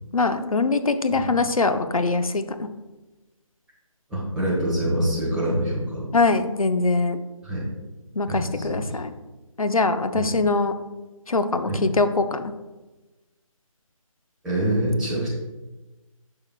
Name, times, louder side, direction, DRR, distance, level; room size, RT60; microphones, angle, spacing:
voice 1, 0.1-2.7 6.1-7.2 8.1-9.1 9.6-10.7 11.3-12.5, left 3 dB, 75° left, 9 dB, 0.7 m, -22 dB
voice 2, 4.1-6.0 7.4-7.7 8.3-8.8 10.1-10.3 11.7-11.8 14.4-15.3, right 1 dB, 5° right, -10 dB, 1.3 m, -25 dB
9.9 x 5.7 x 2.3 m, 1.1 s
figure-of-eight pair, 160°, 18 cm